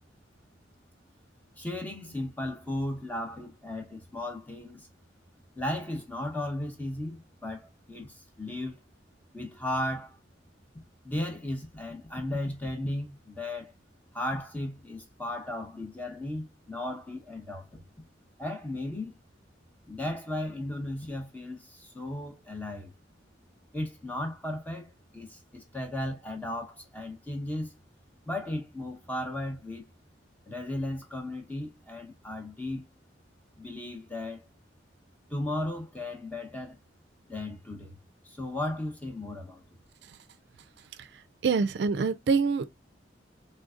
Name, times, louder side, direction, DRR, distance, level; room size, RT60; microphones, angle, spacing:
voice 1, 1.6-4.9 5.6-8.8 9.3-10.2 11.0-13.7 14.1-17.8 18.4-19.1 19.9-22.9 23.7-27.7 28.3-29.8 30.5-32.8 33.6-34.5 35.3-36.8 37.3-38.0 38.2-39.6, left 1 dB, 10° left, 0.8 m, -35 dB
voice 2, 41.0-42.6, right 5 dB, 60° right, 0.4 m, -26 dB
3.8 x 3.4 x 2.4 m
head